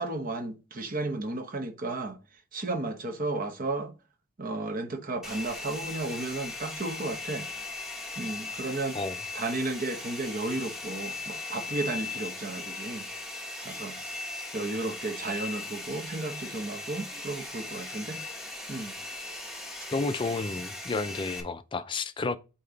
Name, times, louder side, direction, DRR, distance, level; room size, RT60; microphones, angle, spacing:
voice 1, 0.0-2.2 2.5-3.9 4.4-7.5 8.2-9.0 9.3-13.1 13.6-14.0 14.5-18.2 18.7-18.9, right 2 dB, 40° right, 1.0 m, -33 dB
Domestic sounds home sounds, 5.2-21.4, left 3 dB, ahead, 1.0 m, -38 dB
voice 2, 19.9-22.4, left 3 dB, 25° left, 0.4 m, -31 dB
8.4 x 2.9 x 3.9 m
head